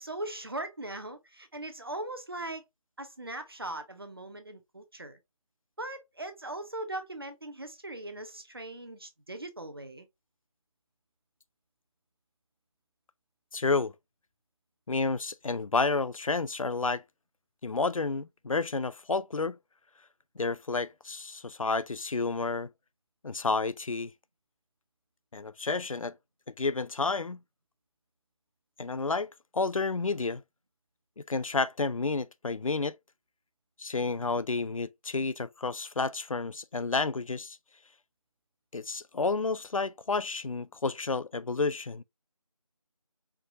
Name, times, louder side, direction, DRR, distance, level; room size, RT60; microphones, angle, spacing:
voice 1, 0.0-2.6 3.0-5.2 5.8-10.1, right 1 dB, 40° right, 0.7 m, -39 dB
voice 2, 13.5-13.9 14.9-17.0 17.6-19.6 20.4-22.7 23.2-24.1 25.3-26.1 26.5-27.4 28.8-30.4 31.2-33.0 33.8-37.6 38.7-42.0, left 3 dB, 70° left, 0.4 m, -30 dB
4.6 x 2.4 x 2.7 m
figure-of-eight pair, 165°, 18 cm